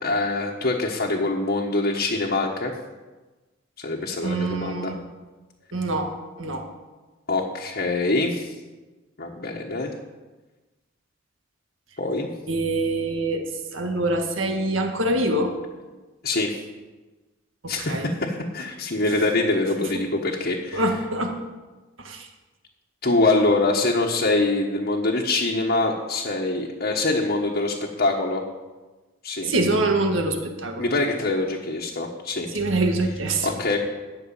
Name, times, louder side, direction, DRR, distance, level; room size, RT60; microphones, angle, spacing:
voice 1, 0.0-2.7 3.8-4.9 7.3-8.5 9.2-9.9 12.0-12.3 16.2-16.6 17.7-20.8 23.0-28.4 29.2-29.5 30.8-32.5 33.4-33.8, left 2 dB, 55° left, -2 dB, 1.3 m, -24 dB
voice 2, 4.2-5.0 5.7-6.7 12.5-15.5 17.6-18.1 19.8-20.0 20.7-21.3 22.0-22.3 29.4-30.9 32.5-33.5, right 2 dB, 90° right, 4 dB, 1.7 m, -25 dB
12.5 x 6.6 x 8.8 m, 1.2 s
head